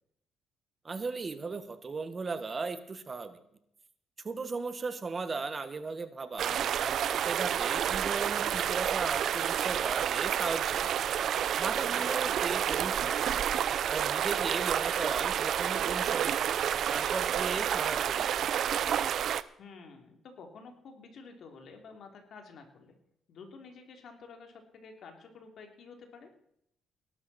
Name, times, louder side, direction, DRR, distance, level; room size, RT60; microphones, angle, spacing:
voice 1, 0.8-3.4 4.2-6.5 6.8-10.9 11.6-13.3 13.8-16.5 16.9-18.6, right 4 dB, 35° right, 10 dB, 1.6 m, -37 dB
sound 1, 6.4-19.4, right 9 dB, 70° right, 0.7 m, -29 dB
voice 2, 11.9-12.3 19.6-23.0 23.3-26.3, left 4 dB, 65° left, 4 dB, 3.4 m, -50 dB
18.5 x 12.0 x 4.4 m, 0.75 s
cardioid pair, 90°, 0 cm